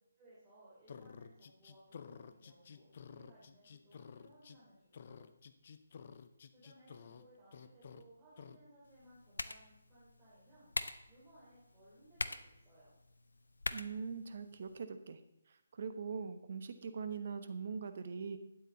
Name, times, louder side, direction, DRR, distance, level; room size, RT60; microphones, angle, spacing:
voice 1, 0.2-5.3 6.5-12.9, right 1 dB, 15° right, -10 dB, 3.6 m, -63 dB
sound 1, 0.9-4.6 4.9-7.2 7.5-8.0 8.4-8.6, left 6 dB, 45° left, 0.7 m, -52 dB
sound 2, 8.8-14.8, left 2 dB, 75° left, 0.7 m, -45 dB
voice 2, 13.7-15.2 15.5-18.4, right 5 dB, 50° right, 10 dB, 1.0 m, -42 dB
12.0 x 9.3 x 3.9 m, 0.82 s
figure-of-eight pair, 145°, 0 cm